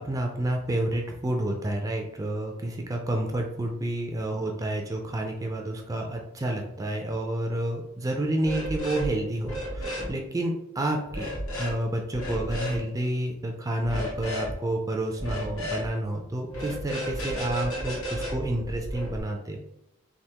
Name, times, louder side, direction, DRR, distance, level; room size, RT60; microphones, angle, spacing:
voice 1, 0.0-19.6, right 1 dB, 15° right, 2 dB, 0.4 m, -30 dB
sound 1, 8.4-9.1 9.4-10.1 11.1-11.7 12.1-12.8 13.8-14.5 15.2-15.9 16.5-19.2, equal, 80° left, 0.9 m, -33 dB
3.4 x 2.5 x 2.8 m, 0.84 s
head